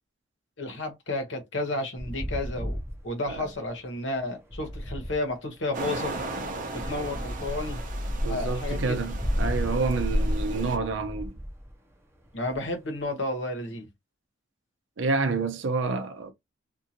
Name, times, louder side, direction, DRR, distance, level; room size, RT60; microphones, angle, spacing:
voice 1, 0.6-2.8 3.0-6.1 6.7-7.8 8.3-9.1 12.3-13.9, left 2 dB, 65° left, 1.1 m, -32 dB
sound 1, 2.0-5.9 6.7-13.0, equal, 15° right, 0.8 m, -37 dB
sound 2, 5.7-10.8, equal, 45° right, 0.7 m, -30 dB
voice 2, 8.2-11.3 15.0-16.3, right 3 dB, 70° right, 0.5 m, -28 dB
2.5 x 2.5 x 2.8 m
head